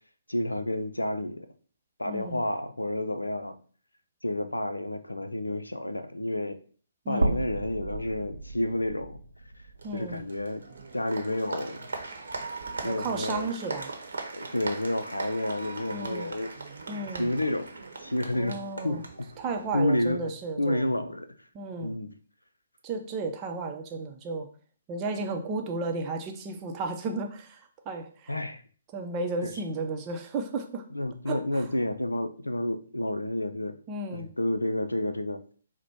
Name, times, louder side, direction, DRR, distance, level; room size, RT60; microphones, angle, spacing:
voice 1, 0.3-1.4 2.0-3.6 4.2-6.6 7.1-9.2 9.9-10.6 10.9-11.9 12.8-13.5 14.3-16.5 17.2-17.7 18.0-19.3 19.7-20.3 20.6-21.3 21.8-22.1 28.3-28.6 29.4-29.5 30.9-33.8 34.1-35.4, left 1 dB, 85° left, 8 dB, 0.5 m, -30 dB
voice 2, 2.1-2.4 7.0-7.4 9.8-10.2 12.8-13.9 15.9-16.3 16.9-17.3 18.3-19.0 19.4-20.9 21.5-21.9 22.8-24.5 24.9-28.3 28.9-30.8 31.3-31.7 33.9-34.3, right 3 dB, 25° right, 4 dB, 0.6 m, -34 dB
sound 1, 7.2-11.4 11.7-11.8 13.2-13.3, right 2 dB, 85° right, 0.3 m, -34 dB
Applause, 9.8-19.9, right 3 dB, 65° right, 0.8 m, -40 dB
4.1 x 2.2 x 4.5 m, 0.43 s
figure-of-eight pair, 130°, 0 cm